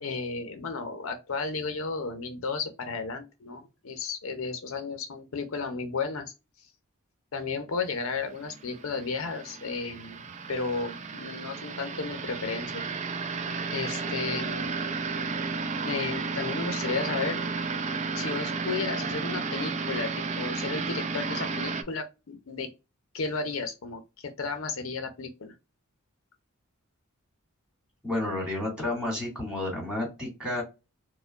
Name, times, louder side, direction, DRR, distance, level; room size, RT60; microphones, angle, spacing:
voice 1, 0.0-6.3 7.3-10.2 10.5-12.8 13.7-14.8 15.8-17.4 18.1-20.1 20.4-22.7 23.1-25.5, left 4 dB, 65° left, 0.6 m, -33 dB
sound 1, 8.3-21.8, right 4 dB, 30° right, 0.4 m, -33 dB
voice 2, 28.0-30.6, left 2 dB, 5° right, 2.0 m, -31 dB
4.3 x 2.1 x 2.4 m
head